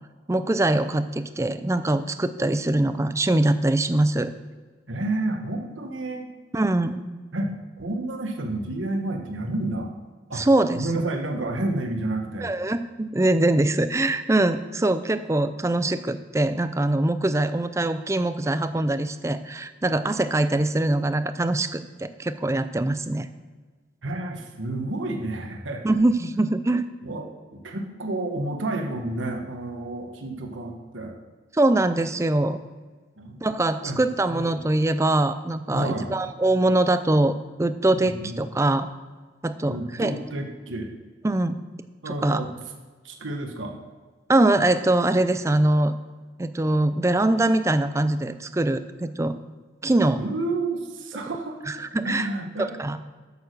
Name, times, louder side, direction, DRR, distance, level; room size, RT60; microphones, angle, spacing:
voice 1, 0.3-4.3 6.5-7.0 10.3-10.9 12.4-23.3 25.8-26.8 31.5-32.6 33.4-38.9 39.4-40.2 41.2-41.6 42.1-42.4 44.3-45.9 46.4-49.4 49.8-50.2 51.7-52.3 52.6-53.1, right 2 dB, 15° right, 11 dB, 0.4 m, -23 dB
voice 2, 4.9-6.3 7.3-9.9 10.3-10.4 10.7-12.5 24.0-25.9 27.0-31.1 33.2-33.4 33.8-34.0 34.3-34.6 35.7-36.1 37.9-38.4 39.7-40.9 42.0-42.5 43.0-43.8 50.2-51.6 52.0-52.7, right 2 dB, 85° right, 3 dB, 1.2 m, -30 dB
8.5 x 7.0 x 6.6 m, 1.4 s
head